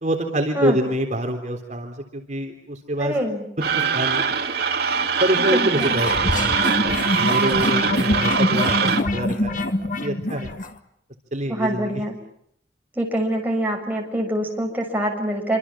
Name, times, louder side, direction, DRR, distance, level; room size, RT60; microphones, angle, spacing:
voice 1, 0.0-3.1 3.6-4.2 5.2-8.7 9.1-9.7 10.0-10.5 11.3-11.9, right 1 dB, 40° right, 3 dB, 3.6 m, -26 dB
voice 2, 3.0-3.4 5.4-6.0 11.5-12.2 13.0-15.6, right 1 dB, 10° right, 1 dB, 6.6 m, -25 dB
sound 1, 3.6-9.0, right 5 dB, 60° right, 2.0 m, -22 dB
sound 2, 5.8-10.7, left 1 dB, 45° left, 2.1 m, -24 dB
28.0 x 26.0 x 7.4 m, 0.71 s
head